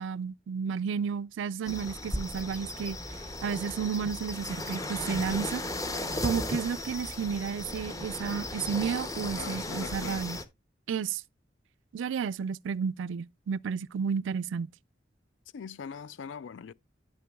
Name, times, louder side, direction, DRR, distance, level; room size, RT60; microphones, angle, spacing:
voice 1, 0.0-3.0 3.4-5.6 6.2-10.4 10.9-11.2 11.9-14.7, right 6 dB, 90° right, 0.3 m, -32 dB
sound 1, 1.6-10.4, left 1 dB, 20° left, 0.7 m, -36 dB
voice 2, 9.4-10.4 15.5-16.7, left 6 dB, 75° left, 0.4 m, -42 dB
12.0 x 6.0 x 2.3 m
head